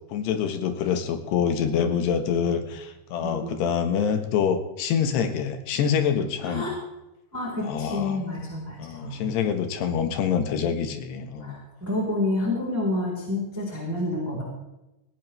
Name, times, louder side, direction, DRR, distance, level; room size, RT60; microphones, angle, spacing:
voice 1, 0.1-6.7 7.6-8.2 8.8-11.6, left 7 dB, 85° left, 8 dB, 3.6 m, -26 dB
voice 2, 3.2-3.6 6.5-6.7 7.3-9.4 11.4-14.4, left 2 dB, 5° right, -3 dB, 3.5 m, -29 dB
18.5 x 17.0 x 3.4 m, 0.96 s
omnidirectional pair, 4.7 m